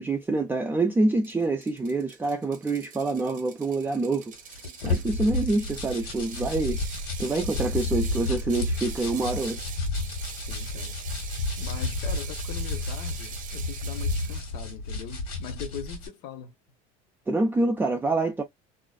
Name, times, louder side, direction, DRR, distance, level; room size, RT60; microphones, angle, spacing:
voice 1, 0.0-4.3 4.8-6.8 7.2-9.6 17.3-18.4, right 2 dB, 10° right, 0.4 m, -26 dB
Ratchet pawl, 1.2-14.4, right 8 dB, 45° right, 0.6 m, -43 dB
sound 1, 4.3-16.1, left 2 dB, 85° left, 1.3 m, -31 dB
voice 2, 10.5-11.0 11.6-16.5, left 8 dB, 70° left, 0.6 m, -41 dB
2.5 x 2.3 x 2.2 m
supercardioid pair, 105°, 19 cm